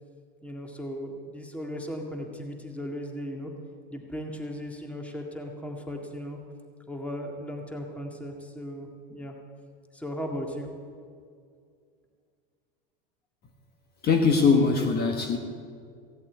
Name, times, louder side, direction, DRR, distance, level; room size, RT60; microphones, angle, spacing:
voice 1, 0.4-3.5 3.9-6.4 6.9-9.4 9.9-10.7, equal, 5° left, 2 dB, 1.9 m, -37 dB
voice 2, 14.0-15.4, left 5 dB, 35° left, 3 dB, 1.5 m, -21 dB
16.5 x 8.4 x 8.6 m, 2.3 s
supercardioid pair, 115°, 29 cm